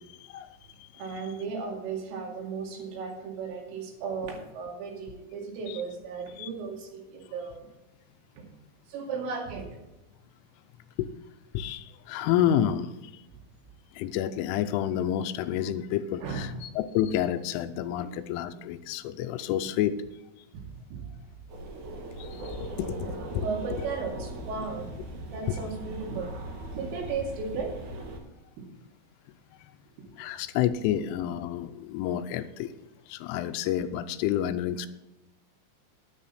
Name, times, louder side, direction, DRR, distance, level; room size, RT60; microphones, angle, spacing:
voice 1, 0.9-7.6 8.4-8.5 8.9-9.7 16.2-16.6 18.0-18.1 20.5-20.6 20.9-21.1 21.8-21.9 23.0-25.0 25.3-26.4 26.7-27.8 28.6-28.7 30.0-30.1, right 5 dB, 85° right, 0 dB, 4.8 m, -35 dB
voice 2, 11.5-13.1 13.9-20.0 22.2-23.0 23.3-23.5 25.5-25.6 30.2-32.7 33.1-34.9, left 11 dB, 90° left, 11 dB, 3.2 m, -29 dB
sound 1, 21.5-28.2, right 1 dB, 60° right, 2.2 m, -39 dB
11.0 x 10.0 x 4.3 m, 1.0 s
omnidirectional pair, 5.6 m